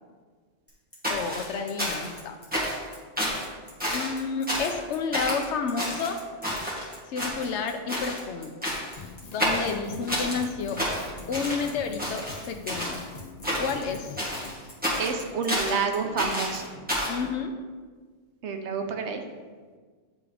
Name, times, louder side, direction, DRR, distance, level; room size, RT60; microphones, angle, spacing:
Bicycle, 0.7-16.6, left 1 dB, 10° left, 1.3 m, -49 dB
sound 1, 1.0-2.2 2.5-2.9 3.2-3.5 3.8-4.2 4.5-4.8 5.1-5.4 5.8-6.9 7.2-7.6 7.9-8.2 8.6-9.0 9.4-10.4 10.8-11.7 12.0-13.0 13.4-13.9 14.2-15.8 16.2-17.2, equal, 5° right, 1.5 m, -30 dB
voice 1, 1.1-2.4 3.9-6.2 7.1-8.6 9.3-10.8 11.3-13.0 13.6-14.2 17.1-17.5, left 5 dB, 75° left, 6 dB, 0.9 m, -30 dB
Drum kit, 9.0-14.5, left 4 dB, 50° left, 0.5 m, -43 dB
voice 2, 15.0-17.0 18.4-19.2, right 5 dB, 70° right, 5 dB, 0.9 m, -29 dB
9.5 x 3.5 x 3.4 m, 1.5 s
omnidirectional pair, 1.2 m